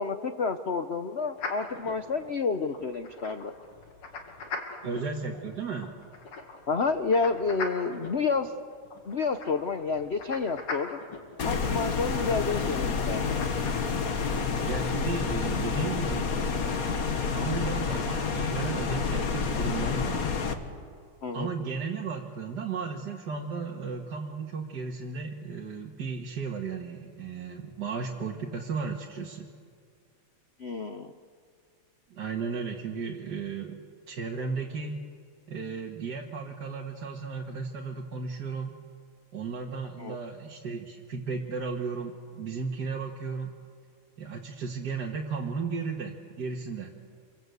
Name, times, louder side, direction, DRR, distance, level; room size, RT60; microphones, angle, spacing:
voice 1, 0.0-3.5 6.7-8.5 9.0-11.0 11.4-13.4 21.2-21.5 30.6-31.1 40.0-40.2, left 4 dB, 65° left, 9 dB, 0.6 m, -29 dB
sound 1, 1.4-13.7, left 3 dB, 90° left, 3.3 m, -42 dB
voice 2, 4.8-5.9 14.6-16.3 17.3-20.3 21.3-29.5 32.1-33.8 34.1-35.0 35.5-38.8 39.3-43.5 44.2-47.0, right 5 dB, 50° right, -1 dB, 2.1 m, -34 dB
sound 2, 11.4-20.5, left 5 dB, 45° left, 1.7 m, -29 dB
27.5 x 24.0 x 8.2 m, 2.1 s
omnidirectional pair, 2.4 m